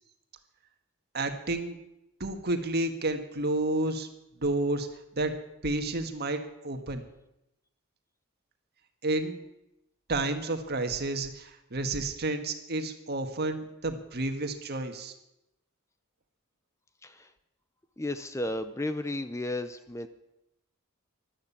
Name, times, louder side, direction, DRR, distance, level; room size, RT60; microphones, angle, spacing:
voice 1, 1.1-1.8 2.2-4.1 4.4-4.9 5.1-5.3 5.6-7.0 9.0-9.4 10.1-15.1, right 2 dB, 50° right, 7 dB, 1.7 m, -30 dB
voice 2, 18.0-20.1, left 1 dB, 15° left, 10 dB, 0.6 m, -33 dB
13.0 x 12.0 x 8.6 m, 0.88 s
head